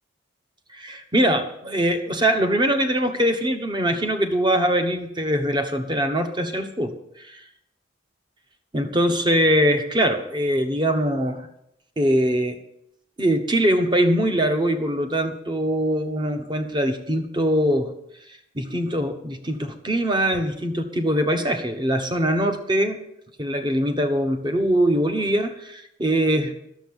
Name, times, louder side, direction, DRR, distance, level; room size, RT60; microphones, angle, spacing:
voice 1, 0.7-7.4 8.7-11.5 12.0-12.6 13.2-17.9 18.5-23.0 23.4-26.6, equal, 25° right, 6 dB, 1.2 m, -22 dB
11.5 x 7.1 x 8.7 m, 0.78 s
head